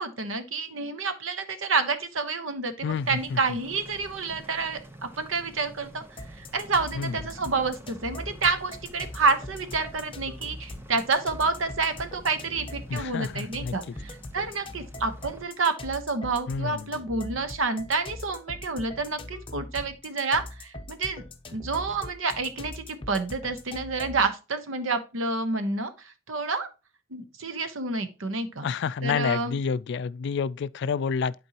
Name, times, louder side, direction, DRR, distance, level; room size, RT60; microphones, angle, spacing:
voice 1, 0.0-6.0 6.4-21.2 21.5-26.7 27.1-28.7 29.0-29.6, right 4 dB, 80° right, 1.0 m, -29 dB
voice 2, 2.8-3.4 7.0-7.1 12.9-13.7 16.5-16.9 28.6-31.3, left 6 dB, 60° left, 0.3 m, -29 dB
sound 1, 2.9-15.5, right 1 dB, 10° right, 0.7 m, -48 dB
sound 2, 6.2-24.3, left 1 dB, 25° left, 0.8 m, -41 dB
11.0 x 4.5 x 2.9 m
head